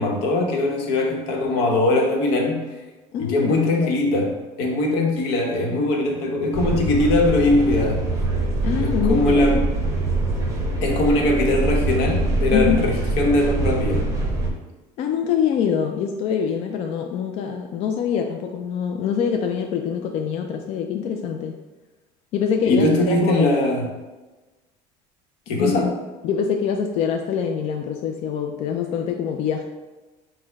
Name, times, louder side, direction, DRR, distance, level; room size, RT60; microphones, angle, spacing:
voice 1, 0.0-2.6 3.2-8.0 8.8-9.7 10.8-14.1 22.7-23.9 25.5-25.9, left 2 dB, 85° left, 1 dB, 0.9 m, -21 dB
voice 2, 3.1-3.9 8.6-9.5 12.5-12.8 15.0-21.5 22.3-23.5 25.6-25.9 26.2-29.6, left 7 dB, 50° left, 3 dB, 0.4 m, -24 dB
sound 1, 6.5-14.5, right 2 dB, 20° right, 0.8 m, -24 dB
4.3 x 2.2 x 4.5 m, 1.2 s
cardioid pair, 145°, 14 cm